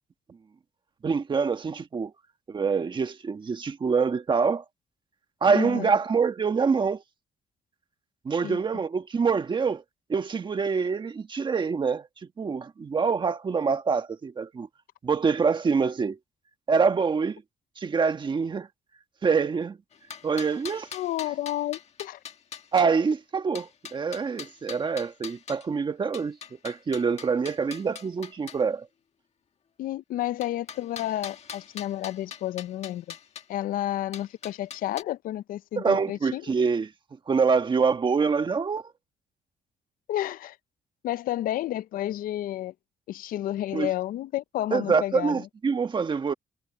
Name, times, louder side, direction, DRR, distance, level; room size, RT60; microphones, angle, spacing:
voice 1, 1.0-2.1 2.5-4.6 5.4-7.0 8.2-9.8 10.1-12.1 12.4-14.7 15.0-16.2 16.7-17.4 17.8-18.7 19.2-19.8 20.2-20.9 22.7-26.4 26.6-28.9 35.8-36.9 37.3-38.9 43.7-43.9 44.7-46.3, right 5 dB, 35° right, 1.4 m, -25 dB
voice 2, 5.5-6.0 8.4-8.6 20.9-22.2 29.8-33.1 33.5-36.4 40.1-40.6 41.0-42.7 43.1-45.5, left 13 dB, 80° left, 0.5 m, -31 dB
sound 1, 19.9-22.9 23.5-25.7 26.1-28.6 30.4-33.4 34.1-35.0, left 7 dB, 50° left, 1.6 m, -42 dB
cardioid pair, 120°, 14 cm